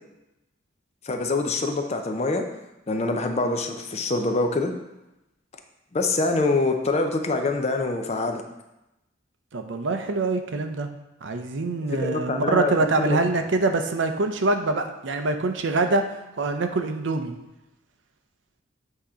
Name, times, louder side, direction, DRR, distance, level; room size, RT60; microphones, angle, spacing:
voice 1, 1.0-2.4 2.9-4.7 5.9-8.4 12.0-12.7 13.1-13.2, left 3 dB, 35° left, 5 dB, 0.5 m, -25 dB
voice 2, 9.5-10.9 11.2-16.1 16.4-17.3, right 3 dB, 70° right, 6 dB, 0.6 m, -24 dB
8.1 x 2.9 x 4.9 m, 0.94 s
head